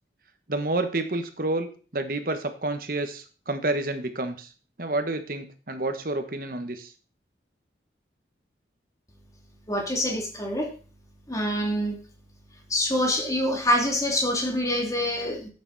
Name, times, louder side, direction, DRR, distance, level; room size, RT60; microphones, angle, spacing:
voice 1, 0.5-4.5 4.8-6.9, right 2 dB, 55° right, 8 dB, 1.4 m, -29 dB
voice 2, 9.7-10.7 11.3-12.0 12.7-15.5, left 1 dB, 20° left, 1 dB, 2.8 m, -25 dB
12.0 x 8.8 x 4.2 m, 0.37 s
head